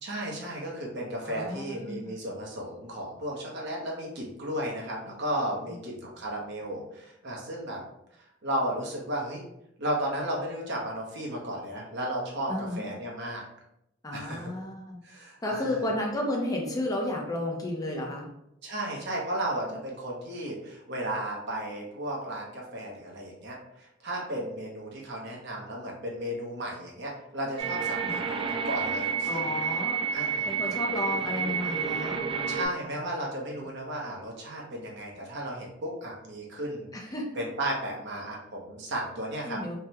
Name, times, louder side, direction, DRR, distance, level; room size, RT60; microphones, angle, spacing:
voice 1, 0.0-7.8 8.4-9.4 9.8-13.4 14.1-14.5 15.0-15.8 18.6-29.6 30.1-30.5 32.5-36.9 37.3-39.6, right 1 dB, 60° right, -2 dB, 0.9 m, -34 dB
voice 2, 1.2-2.1 12.5-12.8 14.0-15.0 15.4-18.3 28.0-28.2 29.3-30.0 30.5-32.3 36.9-37.2 39.5-39.7, left 1 dB, 20° left, 0 dB, 0.5 m, -32 dB
sound 1, 27.6-32.7, right 6 dB, 25° right, 0.3 m, -30 dB
3.4 x 2.1 x 2.8 m, 0.82 s
head